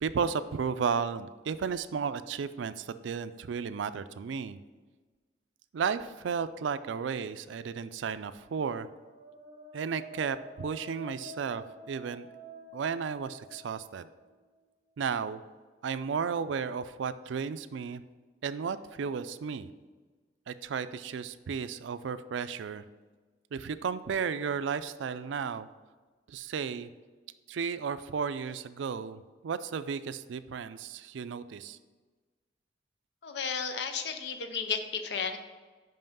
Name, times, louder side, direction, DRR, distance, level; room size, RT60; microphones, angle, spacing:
voice 1, 0.0-4.6 5.7-8.9 9.7-12.3 12.7-14.1 15.0-15.4 15.8-18.0 18.4-19.7 20.5-22.8 23.5-25.7 26.3-26.9 27.5-31.8, right 6 dB, 80° right, 13 dB, 0.4 m, -34 dB
sound 1, 8.8-14.5, equal, 35° right, 1.8 m, -49 dB
voice 2, 33.2-35.4, left 6 dB, 65° left, 7 dB, 0.6 m, -33 dB
5.6 x 5.4 x 5.3 m, 1.4 s
head